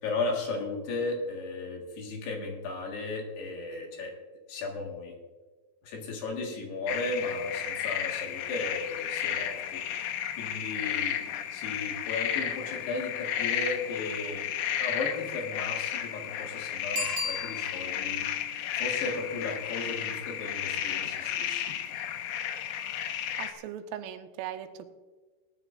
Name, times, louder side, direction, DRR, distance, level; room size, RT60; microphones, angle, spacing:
voice 1, 0.0-4.1 4.5-5.1 5.8-11.2 11.5-14.4 14.8-18.2 18.8-21.7, left 3 dB, 65° left, 1 dB, 3.3 m, -35 dB
sound 1, 6.9-23.5, left 10 dB, 85° left, 2.3 m, -33 dB
Bicycle bell, 16.9-18.1 23.5-23.6, left 2 dB, 35° right, 0.8 m, -34 dB
voice 2, 23.4-24.9, right 10 dB, 90° right, 7 dB, 3.3 m, -39 dB
19.0 x 10.5 x 2.5 m, 1.3 s
omnidirectional pair, 5.8 m